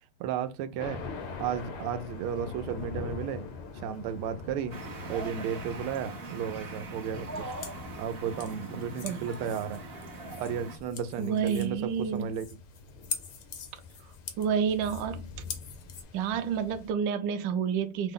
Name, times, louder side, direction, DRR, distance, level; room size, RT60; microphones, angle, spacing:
voice 1, 0.2-1.0 1.4-3.4 3.8-4.8 5.1-7.4 8.0-9.8 10.4-12.5, right 8 dB, 85° right, 1.5 m, -33 dB
Thunder, 0.8-16.9, left 4 dB, 90° left, 1.8 m, -44 dB
sound 1, 4.7-10.8, right 2 dB, 50° right, 0.7 m, -41 dB
sound 2, 7.5-16.0, left 6 dB, 65° left, 0.8 m, -44 dB
voice 2, 11.2-12.3 14.4-15.2 16.1-18.1, right 7 dB, 70° right, 1.2 m, -29 dB
5.5 x 2.0 x 3.7 m
omnidirectional pair, 2.4 m